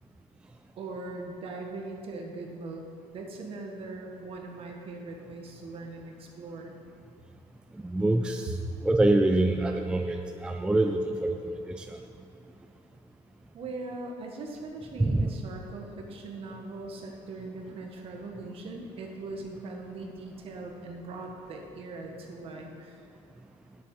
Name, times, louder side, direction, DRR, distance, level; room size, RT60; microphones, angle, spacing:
voice 1, 0.8-2.9 3.1-6.8 13.5-23.0, right 2 dB, 45° right, 2 dB, 1.5 m, -40 dB
voice 2, 7.7-12.0 15.0-15.3, right 2 dB, 5° right, 4 dB, 0.4 m, -26 dB
10.0 x 8.0 x 5.4 m, 2.6 s
cardioid pair, 140°, 13 cm